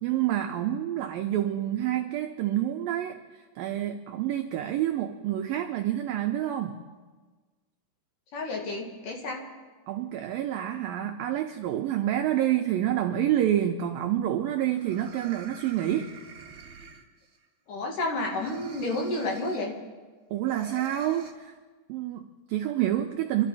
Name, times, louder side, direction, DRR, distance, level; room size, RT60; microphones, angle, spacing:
voice 1, 0.0-6.8 9.9-16.1 20.3-21.5 21.9-23.5, right 12 dB, 85° right, 5 dB, 2.0 m, -28 dB
voice 2, 8.3-9.4 17.7-19.8, left 2 dB, 55° left, 0 dB, 3.0 m, -31 dB
sound 1, 14.1-14.2 14.6-17.5 18.3-19.7 20.5-21.3, right 4 dB, 40° right, 2.1 m, -47 dB
28.0 x 12.5 x 4.2 m, 1.3 s
omnidirectional pair, 5.0 m